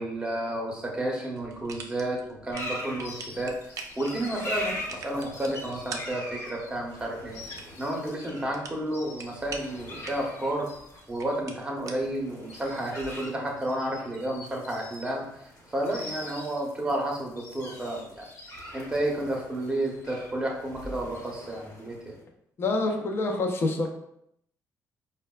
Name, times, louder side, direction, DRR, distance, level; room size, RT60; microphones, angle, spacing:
voice 1, 0.0-7.4 7.8-10.7 11.1-15.3 15.7-18.3 18.7-22.1, right 1 dB, 10° right, -1 dB, 0.8 m, -31 dB
sound 1, 1.3-13.3, right 4 dB, 55° right, 0.4 m, -46 dB
sound 2, 2.5-22.2, left 1 dB, 60° left, 1.0 m, -42 dB
voice 2, 22.6-23.9, left 2 dB, 40° left, 2 dB, 0.5 m, -26 dB
4.5 x 2.1 x 2.3 m, 0.74 s
cardioid pair, 115°, 6 cm